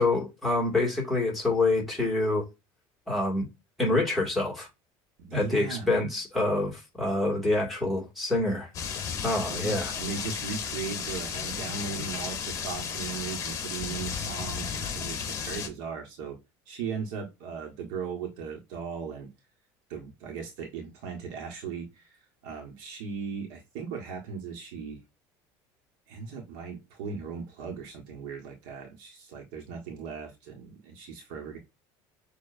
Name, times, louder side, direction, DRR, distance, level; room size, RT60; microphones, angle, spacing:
voice 1, 0.0-2.5 3.1-3.5 3.8-4.7 5.3-8.7 9.2-9.9, left 2 dB, ahead, 2.4 m, -26 dB
voice 2, 5.2-5.9 9.5-16.4 16.7-19.3 19.9-21.9 22.4-25.0 26.1-31.6, right 6 dB, 80° right, 1.6 m, -38 dB
sound 1, 8.7-15.7, left 7 dB, 35° left, 1.1 m, -34 dB
6.8 x 2.8 x 2.7 m
cardioid pair, 135°, 9 cm